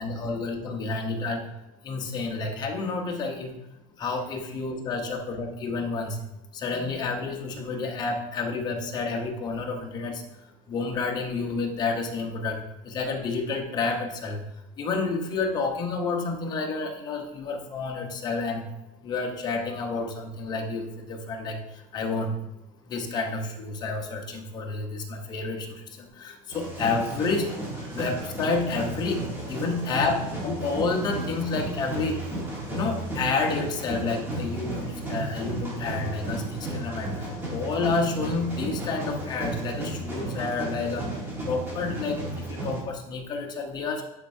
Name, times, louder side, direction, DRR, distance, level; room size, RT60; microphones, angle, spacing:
voice 1, 0.0-1.4 1.8-3.5 4.0-6.2 6.5-10.2 10.7-14.4 14.8-18.6 19.0-21.6 21.9-22.3 22.9-27.5 27.9-32.2 32.7-41.1 41.5-44.0, left 3 dB, 25° left, 2 dB, 0.9 m, -30 dB
sound 1, 26.5-42.8, right 1 dB, 15° right, 1.4 m, -33 dB
10.0 x 4.3 x 2.7 m, 0.92 s
cardioid pair, 170°, 17 cm